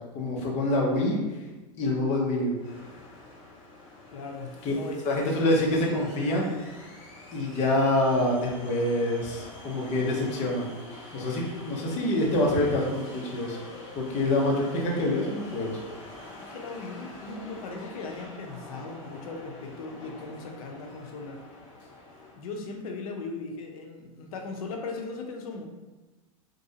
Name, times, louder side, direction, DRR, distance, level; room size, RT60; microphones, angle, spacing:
voice 1, 0.1-1.2 1.8-2.5 4.6-4.7 5.0-6.5 7.3-10.7 11.1-13.6 14.0-15.8, left 1 dB, 40° left, -2 dB, 0.8 m, -26 dB
sound 1, 2.6-22.4, left 2 dB, 55° left, 1.3 m, -46 dB
voice 2, 4.1-5.0 16.4-21.4 22.3-25.7, left 3 dB, 80° left, 3 dB, 0.6 m, -38 dB
3.1 x 2.6 x 2.7 m, 1.2 s
hypercardioid pair, 125°, 18 cm